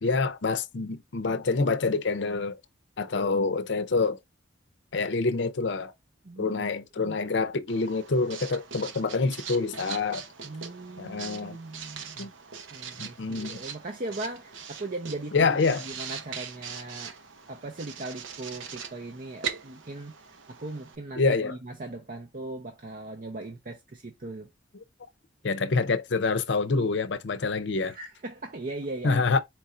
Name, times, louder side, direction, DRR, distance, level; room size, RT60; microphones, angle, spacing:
voice 1, 0.0-2.6 3.0-4.2 4.9-5.9 6.4-10.3 11.0-11.6 12.2-12.3 13.0-13.6 15.3-15.9 21.2-21.5 25.4-28.0 29.0-29.4, left 4 dB, 65° left, 0.6 m, -26 dB
voice 2, 6.2-6.7 7.0-7.2 10.4-12.3 12.7-15.5 15.8-17.2 17.5-24.5 27.8-29.2, right 2 dB, 45° right, 0.6 m, -39 dB
Writing, 7.7-21.0, right 7 dB, 75° right, 0.8 m, -41 dB
4.5 x 2.5 x 4.2 m
head